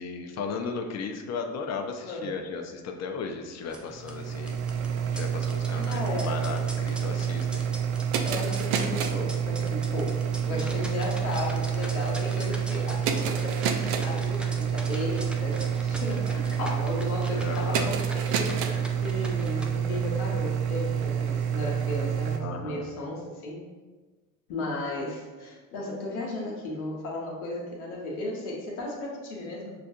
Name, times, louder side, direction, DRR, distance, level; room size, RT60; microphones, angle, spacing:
voice 1, 0.0-4.6 5.1-7.7 11.4-11.5 17.3-17.9 22.4-22.8, left 5 dB, 40° left, 4 dB, 0.6 m, -35 dB
sound 1, 3.6-19.6, equal, 5° right, 0.3 m, -43 dB
sound 2, 3.9-22.4, right 8 dB, 60° right, 0.6 m, -28 dB
voice 2, 5.7-6.3 8.2-23.6 24.5-29.7, left 2 dB, 85° left, -1 dB, 0.9 m, -35 dB
5.7 x 2.4 x 2.6 m, 1.3 s
hypercardioid pair, 70°, 42 cm